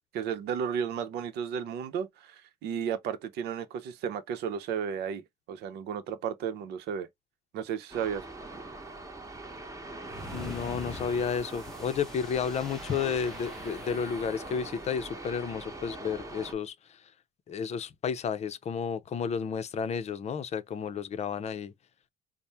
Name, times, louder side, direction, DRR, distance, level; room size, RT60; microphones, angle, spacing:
voice 1, 0.1-5.2 5.5-7.1 7.5-8.2, right 7 dB, 80° right, 0.7 m, -33 dB
sound 1, 7.9-16.5, right 2 dB, 20° right, 1.0 m, -42 dB
sound 2, 10.0-14.9, left 1 dB, ahead, 0.7 m, -45 dB
voice 2, 10.3-16.7 17.5-21.7, left 6 dB, 40° left, 0.5 m, -32 dB
4.2 x 2.1 x 3.3 m
cardioid pair, 110°, 17 cm